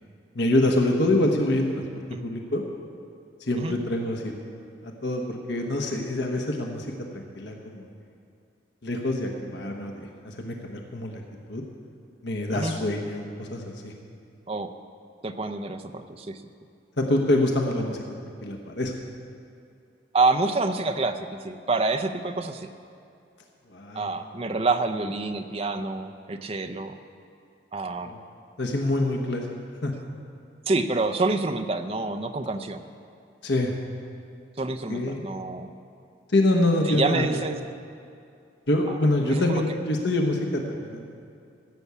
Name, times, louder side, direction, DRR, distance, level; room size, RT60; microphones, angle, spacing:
voice 1, 0.3-1.7 2.2-2.6 3.4-4.3 4.8-6.9 7.1-7.9 8.8-11.2 11.5-11.6 12.2-13.9 17.0-18.0 18.4-18.9 23.7-24.1 28.0-28.2 28.6-29.5 29.8-29.9 33.4-33.7 34.9-35.2 36.3-37.4 38.7-41.1, left 1 dB, 70° left, 1 dB, 1.2 m, -25 dB
voice 2, 15.2-16.4 20.1-21.2 21.4-22.7 23.9-26.9 27.7-28.1 30.7-32.8 34.6-35.7 36.9-37.6 39.2-39.6, right 3 dB, 30° right, 7 dB, 0.6 m, -27 dB
15.0 x 7.1 x 8.3 m, 2.5 s
head